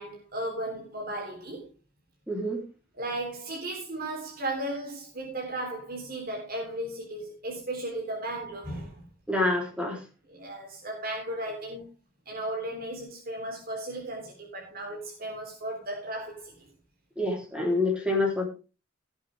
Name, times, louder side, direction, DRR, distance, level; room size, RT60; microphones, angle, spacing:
voice 1, 0.0-1.7 3.0-9.1 10.3-11.9 12.3-16.5, right 1 dB, 50° right, 3.5 m, -35 dB
voice 2, 2.3-2.6 9.3-10.0 17.2-18.4, left 2 dB, 5° right, 3.4 m, -27 dB
17.0 x 8.4 x 3.5 m
head